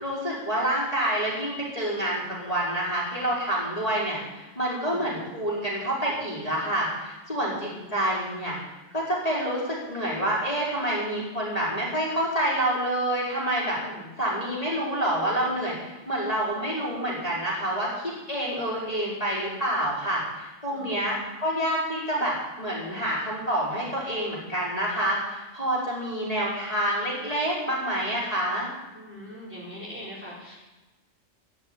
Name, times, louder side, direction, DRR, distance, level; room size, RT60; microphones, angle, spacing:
voice 1, 0.0-8.6 8.9-13.8 14.2-28.7, right 1 dB, 25° left, -6 dB, 5.0 m, -28 dB
voice 2, 4.7-5.1 7.6-8.2 13.7-14.1 20.7-21.2 28.9-30.6, equal, 10° right, -6 dB, 4.0 m, -43 dB
15.5 x 7.1 x 9.9 m, 1.1 s
omnidirectional pair, 1.4 m